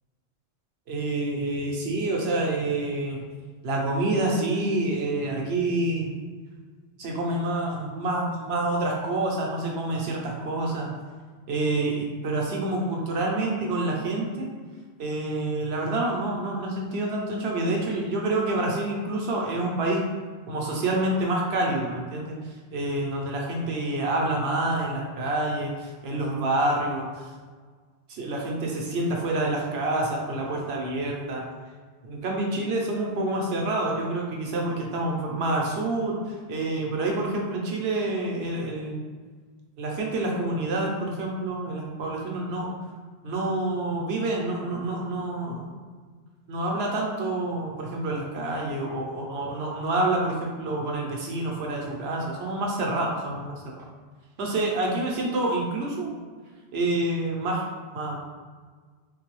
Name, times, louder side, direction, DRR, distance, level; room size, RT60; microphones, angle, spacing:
voice 1, 0.9-3.2 3.6-6.1 7.0-10.9 11.5-14.5 15.0-20.0 20.5-27.3 28.1-31.4 32.0-39.0 39.8-42.7 43.2-45.7 46.5-53.8 54.4-56.1 56.7-57.7 57.9-58.2, right 2 dB, 70° right, -1 dB, 0.9 m, -27 dB
3.8 x 2.2 x 3.0 m, 1.5 s
omnidirectional pair, 1.1 m